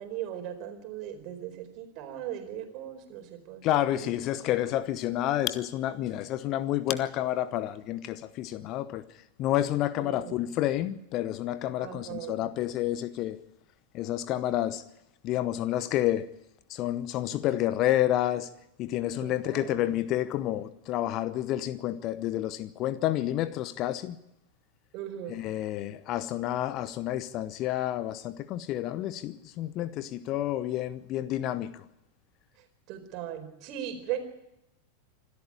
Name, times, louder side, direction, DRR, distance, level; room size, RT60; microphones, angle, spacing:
voice 1, 0.0-3.6 3.9-4.1 10.0-10.4 11.8-12.5 19.2-19.9 24.9-25.4 32.9-34.2, right 10 dB, 40° right, 4.4 m, -38 dB
voice 2, 3.6-9.0 9.4-13.4 13.9-14.8 15.2-16.3 16.7-18.5 18.8-24.2 25.3-31.8, left 13 dB, 35° left, 0.9 m, -29 dB
26.0 x 13.0 x 8.7 m
figure-of-eight pair, 90°, 0 cm